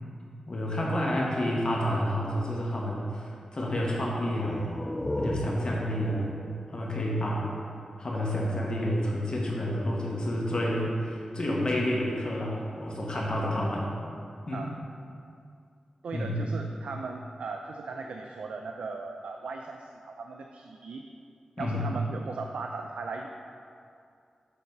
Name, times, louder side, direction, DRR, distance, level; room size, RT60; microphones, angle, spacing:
voice 1, 0.5-4.7 5.2-6.3 6.7-7.5 8.0-13.9 14.5-14.7 16.1-16.4 21.6-21.9, equal, 45° left, -3 dB, 1.3 m, -29 dB
sound 1, 4.3-7.9, left 1 dB, 15° left, 0.4 m, -36 dB
voice 2, 16.0-21.0 21.6-23.3, right 4 dB, 85° right, 3 dB, 0.3 m, -38 dB
6.8 x 4.0 x 5.4 m, 2.5 s
wide cardioid pair, 75°, 2 cm